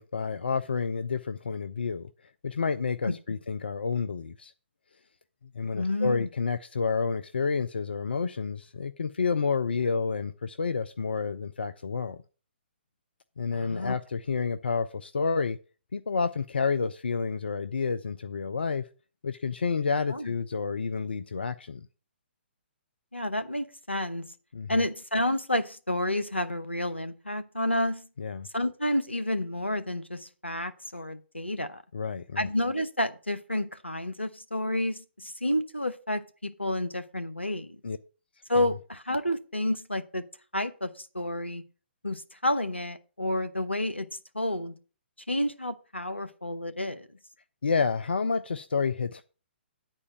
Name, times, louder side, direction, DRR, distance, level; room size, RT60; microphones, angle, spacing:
voice 1, 0.0-2.1 2.4-4.5 5.5-12.2 13.4-15.6 15.9-18.9 19.2-21.9 24.5-24.7 28.2-28.5 31.9-32.5 37.8-38.0 47.6-49.2, left 5 dB, 65° left, 0.5 m, -29 dB
voice 2, 5.7-6.3 13.5-14.0 20.1-20.3 23.1-24.3 24.7-28.1 28.5-31.8 32.4-37.8 38.5-40.2 40.5-41.6 42.0-44.1 44.3-44.8 45.3-47.1, left 1 dB, 90° left, 1.0 m, -30 dB
9.7 x 4.5 x 7.1 m
figure-of-eight pair, 125°, 6 cm